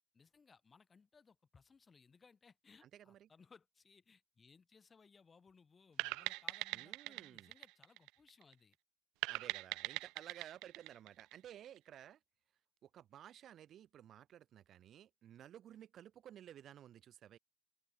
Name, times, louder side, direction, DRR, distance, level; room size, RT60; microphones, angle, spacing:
voice 1, 0.1-8.8, left 5 dB, 20° left, 5.6 m, -65 dB
voice 2, 2.8-3.3 6.7-7.5 9.2-12.2 12.8-17.4, right 10 dB, 35° right, 4.9 m, -55 dB
sound 1, 6.0-8.5 9.2-11.8, right 24 dB, 70° right, 0.6 m, -42 dB
open air
cardioid pair, 165°, 0 cm